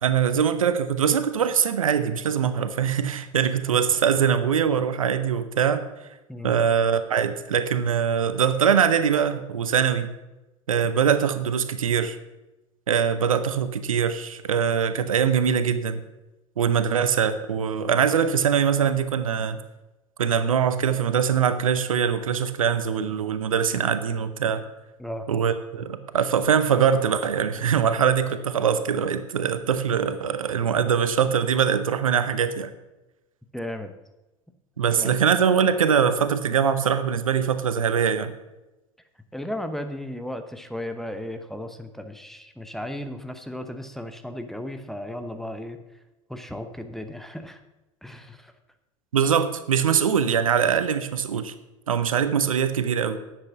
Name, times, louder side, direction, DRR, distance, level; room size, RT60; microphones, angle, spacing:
voice 1, 0.0-5.9 6.4-10.1 10.7-12.2 12.9-16.0 16.6-19.6 20.2-24.6 25.3-32.7 34.8-38.3 49.1-51.5 51.9-53.2, right 7 dB, 80° right, 11 dB, 0.7 m, -22 dB
voice 2, 6.3-6.7 25.0-25.3 33.5-33.9 34.8-35.1 39.3-45.8 46.3-47.6 48.0-48.5, left 1 dB, ahead, 7 dB, 0.9 m, -35 dB
10.5 x 7.7 x 5.9 m, 1.0 s
figure-of-eight pair, 75°, 17 cm